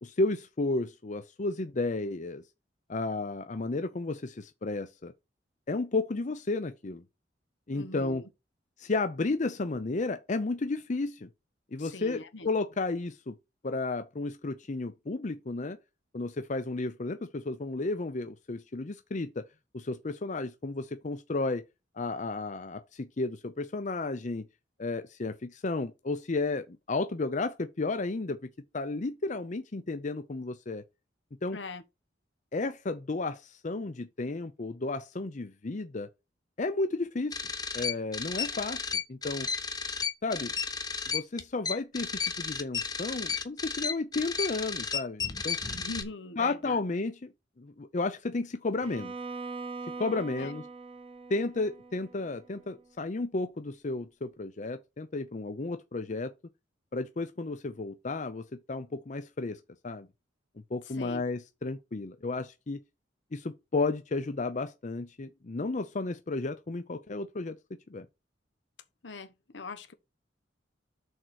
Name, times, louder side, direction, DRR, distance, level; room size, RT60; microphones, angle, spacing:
voice 1, 0.0-2.4 2.9-5.1 5.7-7.0 7.7-8.2 8.8-11.3 11.7-13.4 13.6-15.8 16.1-19.4 19.7-21.6 22.0-24.5 24.8-28.4 28.7-30.8 31.4-31.6 32.5-36.1 36.6-37.4 37.7-39.5 40.2-40.5 41.1-45.6 46.4-47.3 47.6-49.1 50.0-50.6 51.3-56.3 56.9-60.1 60.7-62.8 63.3-67.6 67.9-68.1, left 3 dB, 40° left, 0.6 m, -33 dB
voice 2, 7.7-8.3 11.8-12.5 31.5-31.8 45.7-46.8 50.4-50.5 60.8-61.2 69.0-69.9, left 3 dB, 80° left, 1.2 m, -42 dB
sound 1, 37.3-46.0, left 5 dB, 20° left, 0.9 m, -33 dB
Bowed string instrument, 48.8-52.8, right 4 dB, 30° right, 0.9 m, -42 dB
6.5 x 4.4 x 6.4 m
head